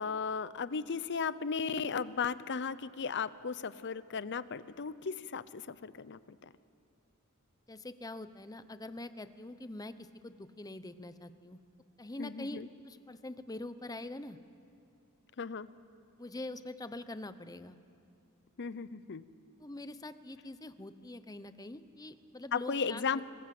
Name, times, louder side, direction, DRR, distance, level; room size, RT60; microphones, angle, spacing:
voice 1, 0.0-6.5 12.2-12.7 15.4-15.7 18.6-19.2 22.5-23.2, left 5 dB, 55° left, 16 dB, 0.7 m, -36 dB
voice 2, 7.7-11.6 12.0-14.4 16.2-17.8 19.6-23.2, left 2 dB, 15° left, 12 dB, 0.8 m, -44 dB
24.5 x 20.0 x 7.7 m, 2.4 s
head